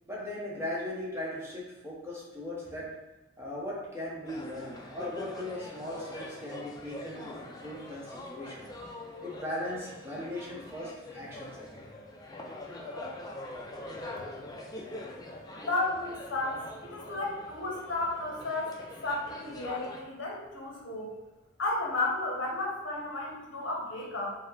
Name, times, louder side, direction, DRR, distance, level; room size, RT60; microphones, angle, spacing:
voice 1, 0.1-2.9 3.4-8.7 9.2-11.9, left 1 dB, 10° right, -6 dB, 0.8 m, -38 dB
sound 1, 4.2-20.0, left 1 dB, 15° left, 0.3 m, -44 dB
voice 2, 15.6-21.2 21.6-24.3, left 2 dB, 60° left, -2 dB, 0.8 m, -33 dB
4.9 x 2.0 x 3.9 m, 1.0 s
head